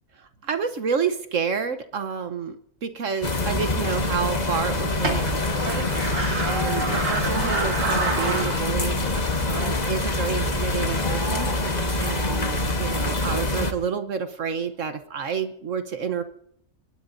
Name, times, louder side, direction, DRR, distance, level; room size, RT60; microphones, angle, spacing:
voice 1, 0.2-6.1 6.4-16.2, right 6 dB, 60° right, 9 dB, 1.3 m, -29 dB
sound 1, 3.2-13.7, left 2 dB, 30° left, 1.3 m, -25 dB
sound 2, 3.5-9.8, right 3 dB, 90° right, 3.0 m, -30 dB
Cheering, 6.1-13.2 13.6-13.8 14.1-15.1, right 1 dB, 20° right, 3.7 m, -40 dB
26.5 x 19.5 x 2.6 m, 0.70 s
omnidirectional pair, 1.5 m